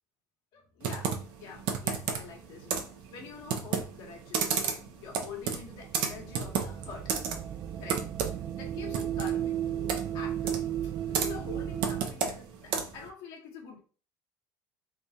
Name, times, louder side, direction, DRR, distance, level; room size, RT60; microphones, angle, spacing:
voice 1, 0.5-7.1 7.8-8.1 8.6-10.6 11.1-13.8, left 6 dB, 70° left, 1.2 m, -46 dB
Computer keyboard, 0.8-13.1, right 6 dB, 70° right, 0.8 m, -33 dB
sound 1, 5.7-12.0, right 11 dB, 40° right, 0.3 m, -34 dB
3.5 x 2.3 x 4.1 m
supercardioid pair, 115°, 9 cm